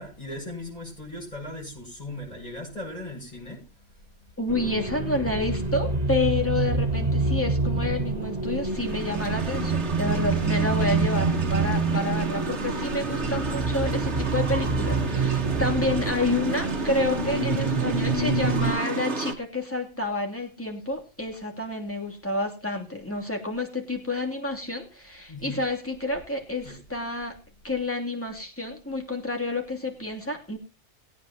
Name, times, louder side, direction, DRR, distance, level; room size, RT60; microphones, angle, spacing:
voice 1, 0.0-3.7 25.3-25.6 26.6-26.7, left 1 dB, 35° left, -3 dB, 7.5 m, -38 dB
voice 2, 4.4-27.4 27.6-30.6, left 2 dB, 10° left, 1 dB, 3.0 m, -29 dB
sound 1, 4.5-18.7, right 3 dB, 35° right, 1.3 m, -27 dB
sound 2, 8.6-19.3, right 3 dB, 75° right, 1.8 m, -32 dB
20.5 x 9.4 x 2.9 m, 0.31 s
omnidirectional pair, 1.2 m